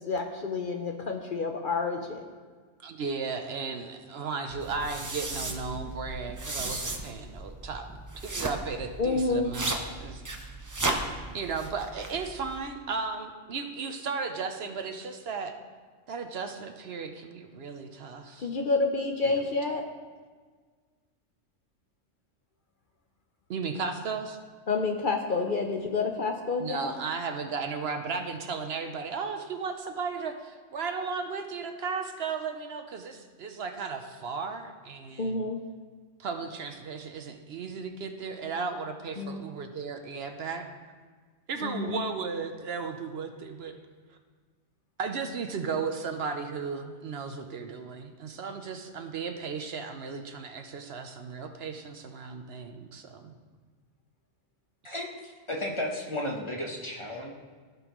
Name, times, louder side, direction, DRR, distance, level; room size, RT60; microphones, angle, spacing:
voice 1, 0.1-2.2 9.0-9.5 18.4-19.8 24.7-26.9 35.2-35.6 39.2-39.4 41.6-42.0, left 3 dB, 50° left, 3 dB, 0.7 m, -29 dB
voice 2, 2.8-7.9 8.2-10.5 11.3-15.6 16.1-18.5 19.2-19.4 23.5-24.4 26.6-35.4 36.2-40.6 41.5-43.8 45.0-53.4, right 5 dB, 65° right, 6 dB, 0.9 m, -35 dB
sound 1, 4.5-12.6, right 2 dB, 20° right, 0.5 m, -35 dB
voice 3, 54.8-57.3, left 1 dB, 25° left, 0 dB, 1.0 m, -34 dB
16.0 x 5.4 x 3.0 m, 1.5 s
omnidirectional pair, 1.2 m